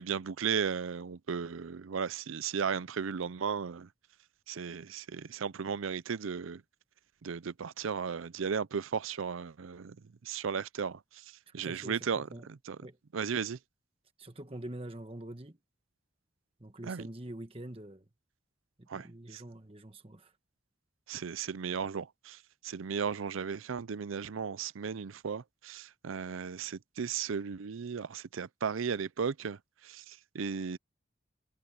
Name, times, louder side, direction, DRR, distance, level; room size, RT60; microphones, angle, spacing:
voice 1, 0.0-3.9 4.5-6.6 7.2-10.0 10.2-11.2 11.5-12.3 12.7-12.8 13.1-13.6 16.8-17.1 18.9-19.1 19.3-19.4 21.1-30.8, right 6 dB, 90° right, 0.5 m, -35 dB
voice 2, 11.5-12.5 12.8-13.0 14.2-15.6 16.6-18.1 18.8-20.3, right 1 dB, 30° right, 1.5 m, -45 dB
head